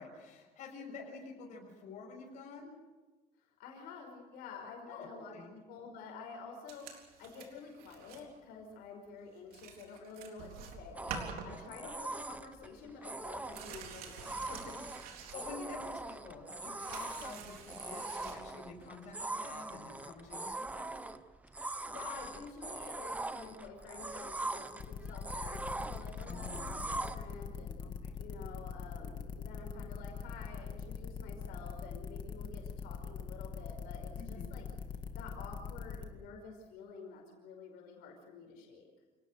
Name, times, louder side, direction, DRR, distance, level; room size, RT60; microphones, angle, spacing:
voice 1, 0.0-2.7 4.9-5.5 11.5-11.7 15.2-21.0 26.2-26.8 27.8-28.2 34.1-34.5, left 4 dB, 50° left, 1 dB, 6.3 m, -49 dB
voice 2, 3.4-14.8 21.6-27.8 28.2-34.7 35.1-38.9, left 4 dB, 80° left, 1 dB, 5.3 m, -50 dB
sound 1, 6.7-8.3 8.6-8.9 9.2-9.3 9.5-12.2 12.4-12.5 12.8-15.9 16.3-18.4 19.5-19.6, right 6 dB, 70° right, 3.9 m, -48 dB
sound 2, 11.0-27.2, right 2 dB, 10° right, 0.8 m, -42 dB
sound 3, 24.8-36.1, left 6 dB, 30° left, 2.0 m, -42 dB
28.5 x 18.5 x 6.6 m, 1.3 s
cardioid pair, 160°, 16 cm